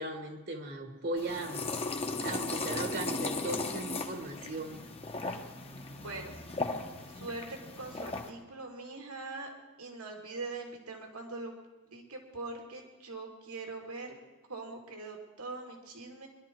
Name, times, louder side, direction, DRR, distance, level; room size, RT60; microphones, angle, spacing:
voice 1, 0.0-1.7 2.2-4.8, right 2 dB, 45° right, 6 dB, 1.4 m, -37 dB
sound 1, 1.2-8.3, left 3 dB, 25° left, 1.1 m, -37 dB
voice 2, 5.9-6.4 7.1-9.5 9.8-11.5 11.9-14.1 14.5-16.3, right 3 dB, 85° right, 2 dB, 2.6 m, -42 dB
23.0 x 12.0 x 4.6 m, 1.2 s
head